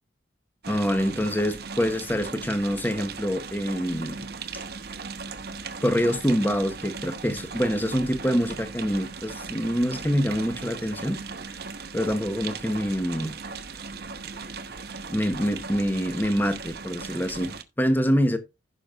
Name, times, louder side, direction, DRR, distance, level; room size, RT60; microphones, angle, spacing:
sound 1, 0.6-17.6, right 4 dB, 55° right, 0.9 m, -38 dB
voice 1, 0.7-4.2 5.8-11.2 11.9-13.3 15.1-18.4, equal, 10° left, 1.0 m, -25 dB
15.5 x 6.0 x 2.5 m
head